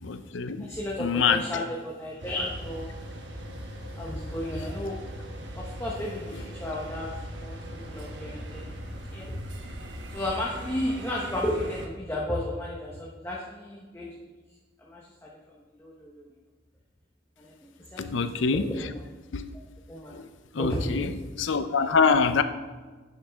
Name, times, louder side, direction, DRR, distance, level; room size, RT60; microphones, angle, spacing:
voice 1, 0.0-0.7 1.0-1.4 18.0-18.7 19.3-19.5 20.1-20.2 20.5-21.1 21.4-22.4, left 5 dB, 80° left, 11 dB, 0.6 m, -24 dB
voice 2, 0.6-2.9 4.0-5.0 5.5-7.1 7.4-7.6 7.9-8.7 9.1-9.4 10.1-14.1 14.8-16.3 17.4-17.5 17.9-19.1 19.9-20.2 20.6-21.1, left 1 dB, 15° left, -4 dB, 1.0 m, -33 dB
sound 1, 2.2-11.9, equal, 70° right, 1.1 m, -40 dB
9.5 x 6.5 x 3.5 m, 1.3 s
head